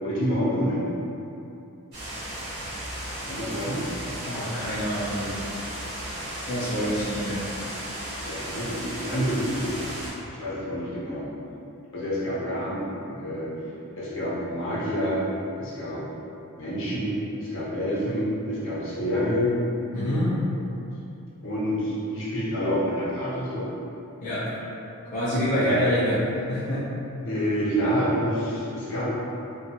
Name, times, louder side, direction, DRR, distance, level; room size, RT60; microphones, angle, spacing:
voice 1, 0.0-0.8 3.3-3.8 8.2-9.9 10.3-11.3 11.9-13.5 14.0-15.2 15.6-16.0 16.6-19.5 21.4-23.7 25.5-25.8 27.2-29.0, equal, 60° left, -9 dB, 0.8 m, -28 dB
sound 1, 1.9-10.1, right 1 dB, 50° right, 1.1 m, -35 dB
voice 2, 4.2-5.5 6.5-7.5 19.9-20.4 24.2-24.5 25.1-26.8, equal, 40° left, -12 dB, 0.5 m, -26 dB
2.7 x 2.3 x 2.7 m, 2.7 s
head